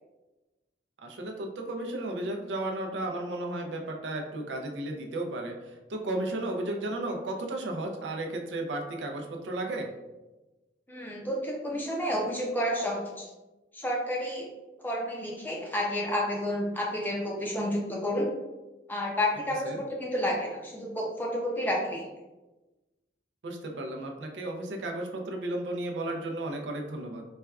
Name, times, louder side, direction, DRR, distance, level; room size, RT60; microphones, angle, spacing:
voice 1, 1.0-9.9 19.6-19.8 23.4-27.2, right 1 dB, 85° right, 2 dB, 0.5 m, -34 dB
voice 2, 10.9-13.3 13.7-14.5 14.8-18.3 18.9-22.0, left 1 dB, 10° left, -2 dB, 0.5 m, -30 dB
4.2 x 2.3 x 2.3 m, 1.1 s
head